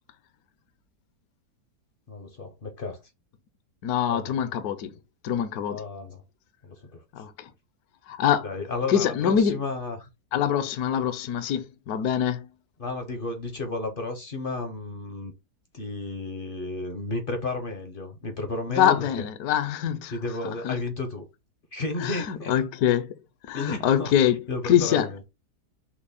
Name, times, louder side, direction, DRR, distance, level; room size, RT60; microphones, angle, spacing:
voice 1, 2.1-3.0 4.1-4.4 5.6-6.2 6.6-7.0 8.4-10.1 12.8-15.3 15.7-19.2 20.1-21.3 21.7-22.5 23.5-24.1 24.5-25.2, left 3 dB, 50° left, 0.6 m, -32 dB
voice 2, 3.8-4.9 5.2-5.8 7.1-7.5 8.1-8.5 8.9-9.6 10.3-12.5 18.7-20.1 20.6-20.8 22.0-23.1 23.5-24.4 24.6-25.1, left 9 dB, 70° left, 1.1 m, -24 dB
5.9 x 2.1 x 4.1 m
omnidirectional pair, 1.8 m